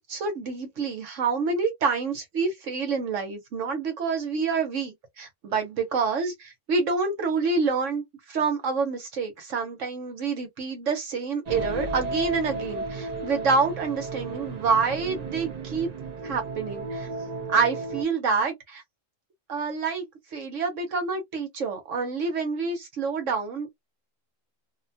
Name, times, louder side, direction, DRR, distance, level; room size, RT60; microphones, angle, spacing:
voice 1, 0.1-8.0 8.3-15.9 16.2-17.1 17.5-18.8 19.5-23.7, right 4 dB, 70° right, 1.2 m, -27 dB
sound 1, 11.5-18.0, right 3 dB, 50° right, 0.5 m, -34 dB
2.8 x 2.2 x 2.7 m
omnidirectional pair, 1.3 m